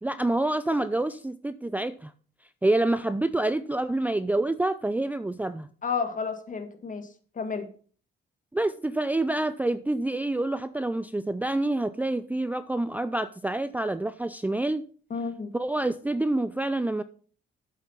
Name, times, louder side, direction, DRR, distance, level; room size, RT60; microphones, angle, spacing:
voice 1, 0.0-2.1 2.6-5.7 8.5-14.8 15.5-17.0, right 2 dB, 10° right, 0.5 m, -27 dB
voice 2, 5.8-7.1 7.4-7.7 15.1-15.5, left 5 dB, 40° left, 1.9 m, -31 dB
8.1 x 7.0 x 5.7 m
cardioid pair, 90°, 20 cm